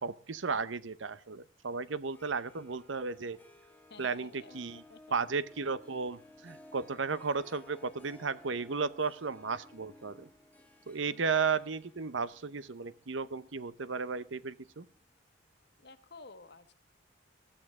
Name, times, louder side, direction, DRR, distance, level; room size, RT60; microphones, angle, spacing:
voice 1, 0.0-3.4 4.0-4.8 5.1-10.3 10.9-14.9, right 5 dB, 75° right, 16 dB, 0.8 m, -34 dB
Harp, 2.1-14.9, left 1 dB, 10° left, 1.5 m, -58 dB
voice 2, 3.9-5.2 11.1-11.4 15.8-16.8, left 3 dB, 55° left, 11 dB, 1.2 m, -53 dB
20.0 x 14.5 x 3.7 m, 0.39 s
head